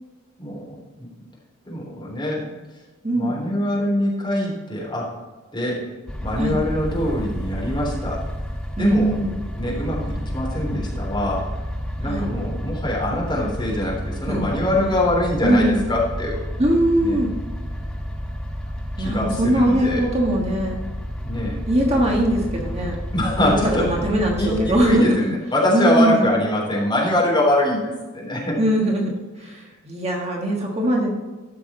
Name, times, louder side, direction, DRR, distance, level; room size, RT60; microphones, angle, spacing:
voice 1, 0.4-1.1 1.7-2.5 3.1-5.1 5.5-5.9 6.2-8.2 8.7-9.1 9.6-11.5 12.0-16.4 17.0-17.2 18.7-20.0 21.2-21.6 23.1-24.1 24.4-28.6, left 1 dB, 20° left, -4 dB, 3.5 m, -23 dB
voice 2, 3.0-3.4 6.4-6.6 8.8-9.3 12.1-12.3 14.3-14.5 15.4-15.8 16.6-17.3 19.0-20.8 21.7-22.9 23.4-25.3 25.7-26.2 28.6-31.1, right 1 dB, 30° right, -1 dB, 1.5 m, -21 dB
sound 1, 6.1-24.9, equal, 5° left, 1.1 m, -30 dB
13.5 x 6.1 x 4.4 m, 1.3 s
head